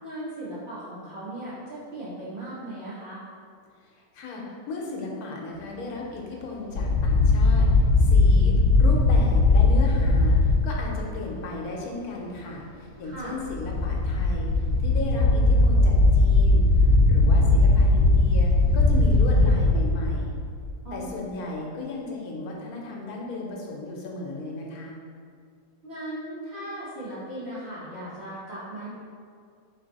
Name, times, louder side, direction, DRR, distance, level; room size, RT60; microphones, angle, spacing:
voice 1, 0.0-3.2 13.0-13.3 20.8-21.2 25.8-28.9, right 1 dB, 45° right, -10 dB, 1.5 m, -37 dB
voice 2, 4.1-7.7 8.0-10.4 10.6-14.5 14.8-16.6 17.1-20.3 20.9-25.0, left 3 dB, 85° left, -1 dB, 1.2 m, -35 dB
sound 1, 6.7-10.6 13.4-20.7, left 2 dB, 65° left, 1.1 m, -19 dB
4.0 x 3.2 x 3.9 m, 2.2 s
omnidirectional pair, 1.6 m